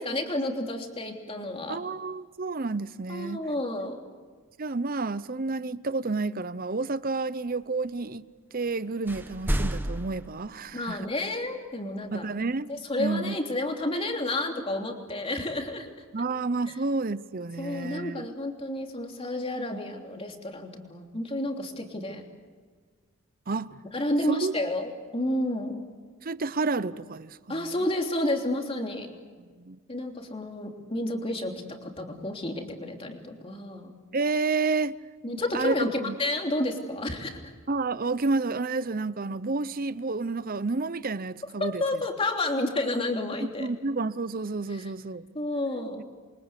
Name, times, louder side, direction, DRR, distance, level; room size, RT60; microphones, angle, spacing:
voice 1, 0.0-1.8 3.1-4.0 10.7-12.3 12.7-15.9 17.6-22.2 23.9-25.8 27.5-29.1 29.9-33.9 35.2-37.5 41.6-43.7 44.7-44.9 45.3-46.0, left 1 dB, 25° left, 3.2 m, -30 dB
voice 2, 1.7-3.4 4.6-8.3 8.5-11.1 12.1-13.4 16.1-18.3 23.5-23.7 24.3-24.5 26.2-27.7 29.6-29.8 34.1-35.0 35.5-36.2 37.7-41.8 43.6-45.3, right 3 dB, 40° right, 0.7 m, -30 dB
sound 1, 8.6-8.8 9.0-11.1, right 1 dB, 10° right, 1.0 m, -31 dB
28.5 x 24.0 x 8.3 m
head